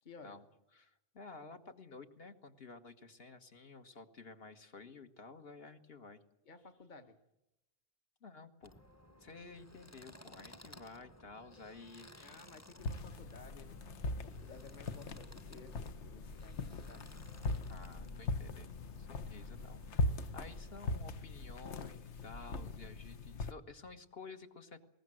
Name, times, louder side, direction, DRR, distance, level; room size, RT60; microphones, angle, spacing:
voice 1, 0.0-0.4 6.4-7.2 12.2-13.8 14.1-17.1, left 4 dB, 45° left, 6 dB, 1.3 m, -56 dB
voice 2, 0.7-6.2 8.2-8.8 9.2-12.4 17.7-18.7 19.0-24.9, left 4 dB, 60° left, 6 dB, 1.7 m, -53 dB
sound 1, 8.6-20.8, equal, 15° left, 0.8 m, -58 dB
sound 2, 12.8-23.5, left 2 dB, 85° left, 1.3 m, -40 dB
21.5 x 19.0 x 7.7 m, 0.89 s
omnidirectional pair, 1.1 m